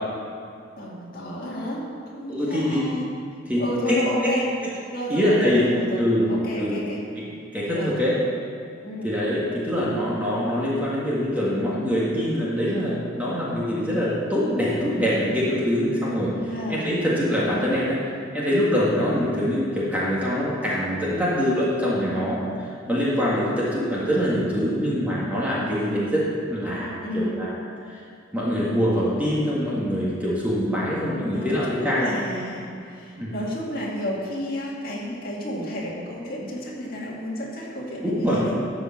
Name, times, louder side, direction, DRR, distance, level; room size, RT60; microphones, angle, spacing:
voice 1, 0.8-1.8 2.1-3.1 3.6-4.5 4.9-7.0 7.7-8.0 8.8-9.1 16.5-16.8 23.1-23.2 27.0-27.5 31.2-38.6, left 1 dB, 45° left, -5 dB, 2.3 m, -31 dB
voice 2, 2.3-2.8 3.5-3.6 5.1-5.7 6.0-6.3 6.6-6.7 7.1-7.2 7.5-8.2 9.0-18.0 18.3-27.5 28.3-32.1 33.2-33.3 38.0-38.4, equal, 5° right, -7 dB, 1.6 m, -24 dB
12.5 x 5.0 x 7.2 m, 2.3 s
head